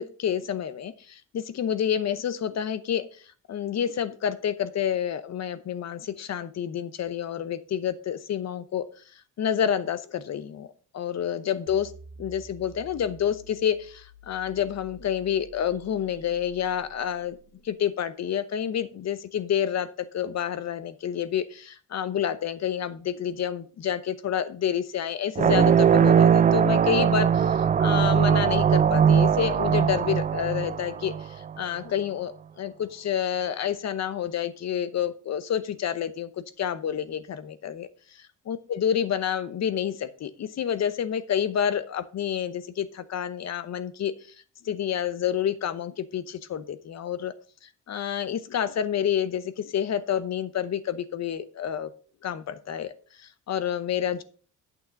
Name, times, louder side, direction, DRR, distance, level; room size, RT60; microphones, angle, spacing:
voice 1, 0.0-3.1 3.5-8.9 9.4-10.7 10.9-11.9 12.2-17.4 17.6-36.3 36.6-37.9 38.5-44.1 44.6-47.3 47.9-51.9 52.2-52.9 53.2-54.2, left 9 dB, 55° left, 14 dB, 0.9 m, -29 dB
sound 1, 11.7-17.9, right 3 dB, 85° right, 1.4 m, -50 dB
sound 2, 25.3-31.5, right 8 dB, 25° right, 0.3 m, -20 dB
8.8 x 6.6 x 5.2 m, 0.41 s
cardioid pair, 105°, 32 cm